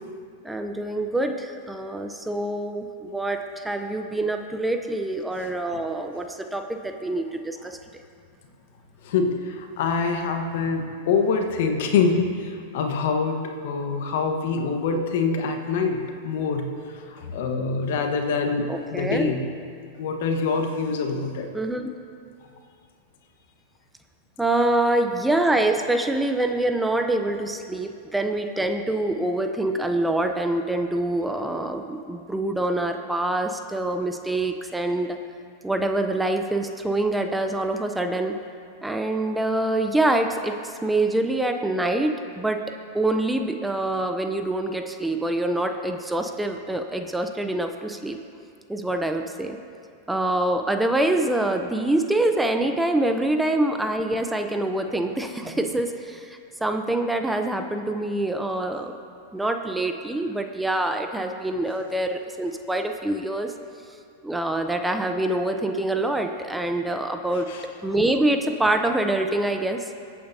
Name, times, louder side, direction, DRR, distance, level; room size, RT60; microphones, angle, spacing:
voice 1, 0.4-7.8 18.7-19.3 21.5-21.9 24.4-35.2 35.6-38.4 38.8-42.6 42.9-48.2 48.7-49.6 50.1-58.9 59.3-63.5 64.2-67.5 67.8-69.8, right 1 dB, 5° right, 5 dB, 0.7 m, -25 dB
voice 2, 9.0-13.4 13.6-16.7 17.1-19.4 20.0-21.5 67.5-67.6, left 5 dB, 65° left, 4 dB, 1.2 m, -25 dB
22.0 x 8.7 x 2.8 m, 2.3 s
hypercardioid pair, 100°, 0 cm